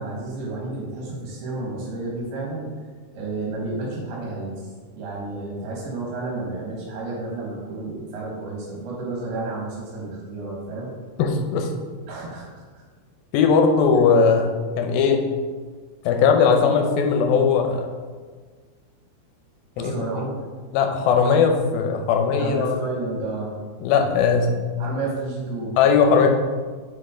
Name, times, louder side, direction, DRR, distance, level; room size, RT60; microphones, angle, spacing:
voice 1, 0.0-2.7 3.1-10.9 12.1-12.5 12.7-12.8 19.8-20.3 22.4-23.6 24.8-25.8, right 2 dB, 75° right, -3 dB, 3.5 m, -31 dB
voice 2, 11.2-11.7 13.3-15.2 16.1-17.9 19.8-19.9 20.7-22.7 23.8-24.5 25.8-26.3, left 5 dB, 80° left, 3 dB, 2.4 m, -19 dB
8.0 x 5.3 x 3.7 m, 1.5 s
omnidirectional pair, 4.6 m